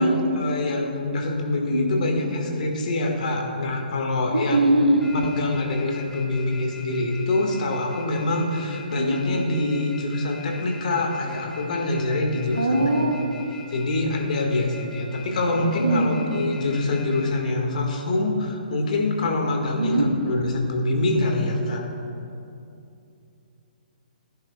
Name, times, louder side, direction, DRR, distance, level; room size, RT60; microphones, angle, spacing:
voice 1, 0.0-4.7 5.1-12.8 13.7-21.8, left 2 dB, 55° left, 2 dB, 1.8 m, -25 dB
sound 1, 2.1-2.3 3.0-3.6 4.1-4.4 4.7-17.2, left 6 dB, 10° left, 2.5 m, -43 dB
voice 2, 4.3-5.1 8.9-9.2 12.5-13.2 15.8-16.1 19.8-20.3, right 1 dB, 85° right, -1 dB, 2.8 m, -21 dB
20.5 x 10.5 x 2.4 m, 2.6 s
figure-of-eight pair, 130°, 5 cm